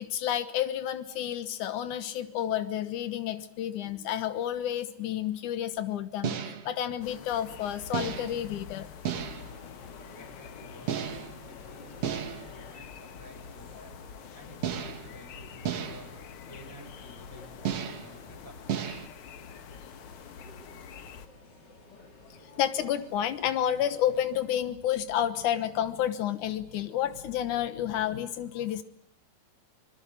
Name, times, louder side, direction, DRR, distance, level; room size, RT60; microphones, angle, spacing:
voice 1, 0.0-8.9 22.4-28.8, left 10 dB, 85° left, 12 dB, 2.7 m, -30 dB
sound 1, 6.2-6.7 7.9-8.4 9.0-9.6 10.9-11.4 12.0-12.6 14.6-15.1 15.6-16.2 17.6-18.1 18.7-19.1, right 8 dB, 60° right, 2.6 m, -33 dB
sound 2, 7.0-21.3, left 7 dB, 55° left, 1.7 m, -47 dB
sound 3, 9.4-24.5, left 2 dB, 35° left, 3.5 m, -52 dB
voice 2, 10.0-14.0 14.3-16.1 16.4-18.5, equal, 5° left, 4 dB, 6.8 m, -52 dB
26.0 x 21.0 x 8.7 m, 0.69 s
omnidirectional pair, 3.4 m